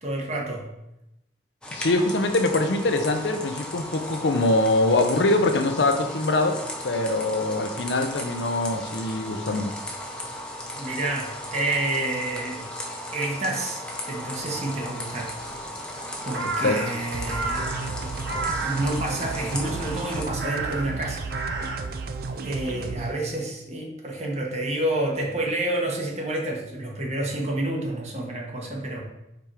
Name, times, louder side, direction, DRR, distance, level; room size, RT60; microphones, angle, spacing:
voice 1, 0.0-0.7 10.7-13.8 14.1-15.3 16.2-17.7 18.6-21.3 22.4-29.0, right 1 dB, 40° right, -1 dB, 1.3 m, -29 dB
sound 1, 1.6-20.2, left 1 dB, 5° left, 0.9 m, -36 dB
voice 2, 1.7-6.6 6.8-9.7 16.6-16.8, left 2 dB, 85° left, 6 dB, 0.7 m, -23 dB
Crow, 14.4-22.9, right 3 dB, 75° right, 0.9 m, -35 dB
sound 2, 17.1-23.1, right 4 dB, 55° right, 0.4 m, -33 dB
5.3 x 4.4 x 4.7 m, 0.90 s
head